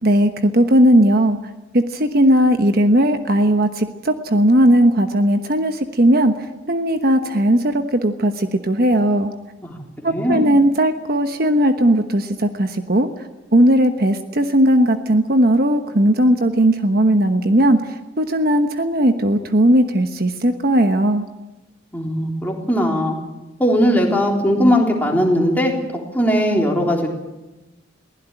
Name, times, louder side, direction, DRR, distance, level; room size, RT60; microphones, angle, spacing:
voice 1, 0.0-1.4 1.7-9.3 10.0-21.3, right 1 dB, 50° right, 7 dB, 1.2 m, -17 dB
voice 2, 10.1-10.4 21.9-23.2 23.6-25.7 26.1-27.1, equal, 10° left, 0 dB, 3.6 m, -18 dB
22.5 x 16.0 x 9.1 m, 1.1 s
head